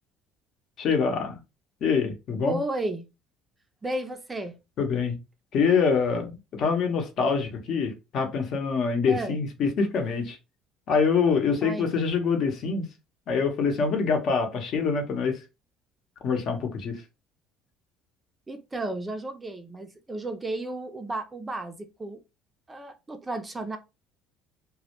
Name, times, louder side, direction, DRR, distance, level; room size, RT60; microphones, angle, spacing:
voice 1, 0.8-1.4 1.8-2.6 4.8-5.2 5.5-10.4 10.9-12.9 13.3-15.4 16.2-17.0, left 5 dB, 55° left, 0.7 m, -25 dB
voice 2, 2.4-3.1 3.8-4.6 9.1-9.4 11.6-11.9 18.5-22.2 22.7-23.8, right 1 dB, 20° right, 0.4 m, -33 dB
2.1 x 2.1 x 2.8 m
cardioid pair, 105°, 0 cm